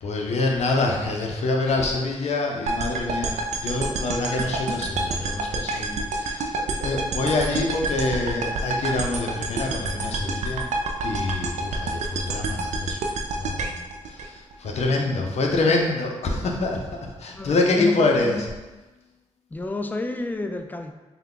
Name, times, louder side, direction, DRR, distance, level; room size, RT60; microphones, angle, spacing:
voice 1, 0.0-10.7 11.0-13.0 13.4-18.5, left 2 dB, 65° left, 1 dB, 0.6 m, -26 dB
sound 1, 2.7-14.8, right 2 dB, 70° right, 0.4 m, -28 dB
voice 2, 17.3-18.4 19.5-20.9, left 2 dB, 15° left, 6 dB, 0.3 m, -30 dB
3.4 x 2.2 x 3.7 m, 1.2 s
cardioid pair, 60°, 12 cm